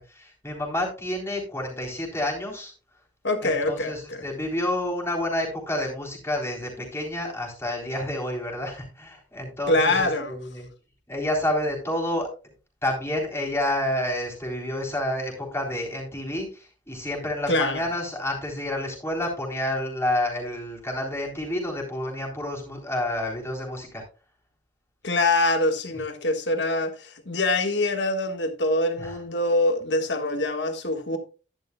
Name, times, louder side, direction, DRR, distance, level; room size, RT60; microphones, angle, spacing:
voice 1, 0.1-2.7 3.4-10.7 11.1-12.3 12.8-24.0 29.0-29.1, left 1 dB, 15° left, 3.7 m, -29 dB
voice 2, 3.2-4.2 9.7-10.4 17.5-17.8 25.0-31.2, left 2 dB, 75° left, 1.6 m, -24 dB
11.0 x 10.5 x 2.3 m
head